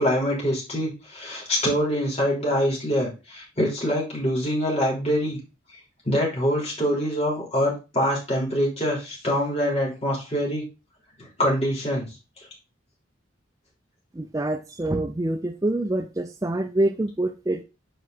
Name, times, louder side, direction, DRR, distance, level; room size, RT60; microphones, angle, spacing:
voice 1, 0.0-5.4 6.0-10.7 11.2-12.1, equal, 30° left, -3 dB, 3.3 m, -24 dB
voice 2, 14.1-17.6, right 1 dB, 15° right, 6 dB, 0.4 m, -26 dB
7.8 x 4.6 x 3.9 m, 0.30 s
head